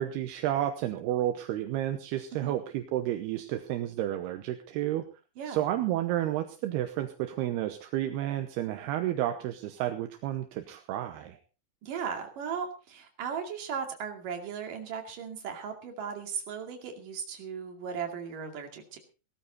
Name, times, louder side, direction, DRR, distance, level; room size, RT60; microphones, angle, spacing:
voice 1, 0.0-5.0 5.5-11.4, right 12 dB, 75° right, 7 dB, 2.7 m, -31 dB
voice 2, 11.8-19.0, right 6 dB, 50° right, 4 dB, 3.7 m, -37 dB
18.0 x 13.0 x 4.1 m, 0.34 s
omnidirectional pair, 5.2 m